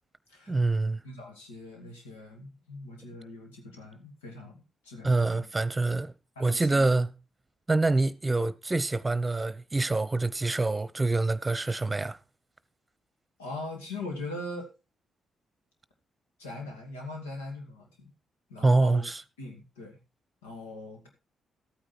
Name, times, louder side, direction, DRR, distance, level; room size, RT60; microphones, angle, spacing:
voice 1, 0.5-1.0 5.0-6.1 6.4-7.1 7.7-12.2 18.6-19.2, right 2 dB, 25° right, 0.9 m, -26 dB
voice 2, 1.0-5.4 6.4-6.9 13.4-14.7 16.4-18.1 18.5-19.0 19.4-20.0 20.4-21.1, left 2 dB, 90° left, 2.4 m, -41 dB
13.0 x 9.1 x 4.3 m
hypercardioid pair, 40°, 0 cm